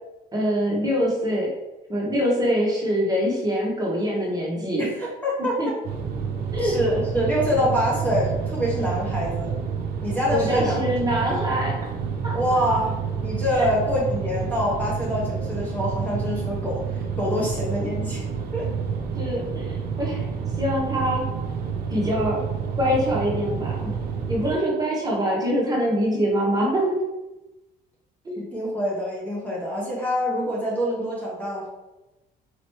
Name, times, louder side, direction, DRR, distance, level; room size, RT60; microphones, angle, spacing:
voice 1, 0.3-1.5 1.9-4.9 5.6-5.7 6.5-6.7 10.3-11.7 12.2-12.4 13.5-13.6 19.2-20.2 20.6-21.2 21.9-22.4 22.8-23.9 24.3-26.8 28.2-28.5, equal, 20° right, -4 dB, 1.2 m, -24 dB
voice 2, 4.8-5.8 6.6-9.6 10.0-10.8 11.2-11.4 12.3-18.3 18.5-18.6 28.3-31.7, equal, 10° left, -5 dB, 1.1 m, -26 dB
sound 1, 5.8-24.5, right 6 dB, 60° right, 0.6 m, -29 dB
4.3 x 3.0 x 3.1 m, 1.0 s
cardioid pair, 110°, 17 cm